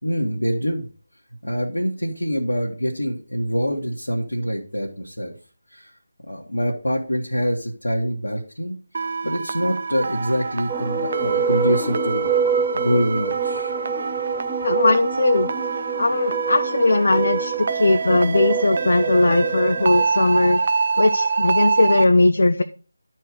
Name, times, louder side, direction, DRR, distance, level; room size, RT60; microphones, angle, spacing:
voice 1, 0.0-0.9 1.4-5.3 5.7-5.9 6.3-12.3 12.7-13.7, equal, 80° left, -3 dB, 1.7 m, -25 dB
sound 1, 8.9-22.0, right 4 dB, 45° right, 0.7 m, -26 dB
sound 2, 10.7-20.0, right 6 dB, 10° right, 0.6 m, -27 dB
voice 2, 14.6-15.5 16.0-20.6 21.0-22.6, left 2 dB, 60° left, 7 dB, 0.7 m, -19 dB
11.5 x 4.6 x 4.9 m, 0.38 s
figure-of-eight pair, 160°, 0 cm